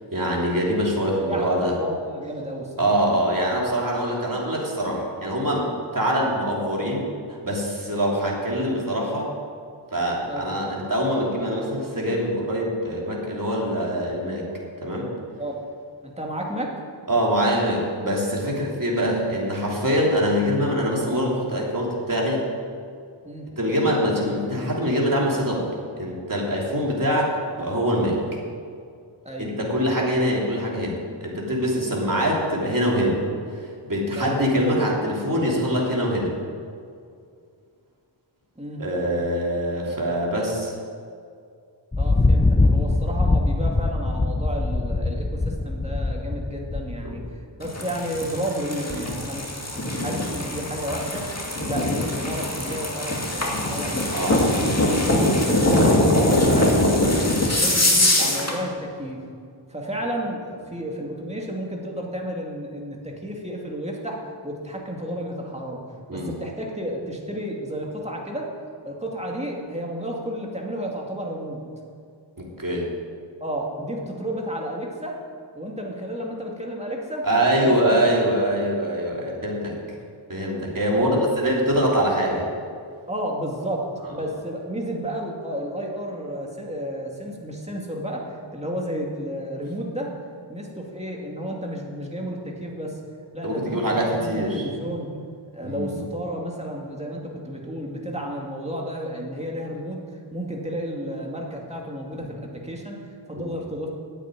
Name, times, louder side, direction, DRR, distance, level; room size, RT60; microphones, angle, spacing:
voice 1, 0.1-1.7 2.8-5.7 5.9-9.3 9.9-14.4 14.8-15.1 17.1-22.5 23.6-25.7 26.0-28.2 29.4-33.2 33.5-36.3 38.8-40.7 47.0-47.1 54.1-54.4 54.8-55.0 66.1-66.3 72.4-72.9 77.2-79.7 80.3-81.1 81.4-82.5 93.4-94.6 95.6-95.9 102.1-102.2 103.3-103.4, equal, 45° right, -3 dB, 3.2 m, -24 dB
voice 2, 1.1-2.9 10.3-10.5 15.4-15.6 16.0-16.7 18.4-18.6 23.2-23.5 29.2-29.5 34.1-34.4 38.6-38.8 42.0-51.2 51.6-54.3 55.0-57.3 57.6-59.2 59.7-64.2 64.4-65.8 66.1-68.5 68.8-71.6 73.4-75.2 75.5-77.3 77.5-77.7 80.9-81.3 83.1-83.8 84.1-90.1 90.5-93.0 93.3-95.1 95.5-103.9, equal, 15° right, -1 dB, 2.4 m, -32 dB
Thunder, 41.9-47.4, left 2 dB, 15° left, 0.5 m, -22 dB
sound 1, 47.6-58.6, left 1 dB, 35° left, 2.1 m, -22 dB
9.9 x 8.4 x 9.2 m, 2.3 s
wide cardioid pair, 55°, 47 cm